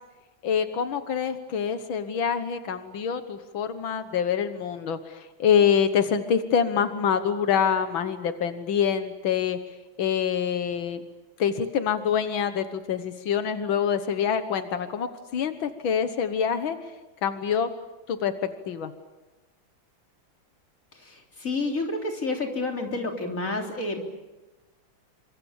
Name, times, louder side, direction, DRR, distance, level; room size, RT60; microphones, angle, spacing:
voice 1, 0.4-9.6 10.0-11.1 11.4-16.8 17.2-17.7 18.1-18.9, left 7 dB, 90° left, 9 dB, 2.0 m, -26 dB
voice 2, 20.9-24.0, left 2 dB, 40° left, 2 dB, 3.9 m, -30 dB
29.0 x 25.5 x 7.2 m, 1.1 s
omnidirectional pair, 2.1 m